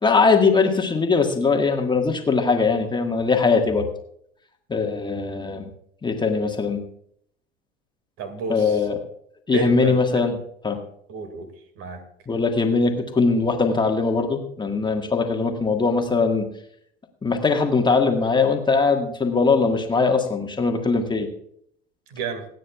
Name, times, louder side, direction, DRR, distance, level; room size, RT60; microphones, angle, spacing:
voice 1, 0.0-3.9 4.7-5.7 6.0-6.8 8.5-8.9 9.5-10.3 10.6-10.8 12.3-16.5 17.2-21.3, left 4 dB, 15° left, 3 dB, 1.6 m, -21 dB
voice 2, 8.2-8.9 9.5-10.3 11.1-11.5 11.8-12.0 22.1-22.5, right 5 dB, 50° right, 8 dB, 2.2 m, -31 dB
27.0 x 9.3 x 2.4 m, 0.68 s
figure-of-eight pair, 70°, 30 cm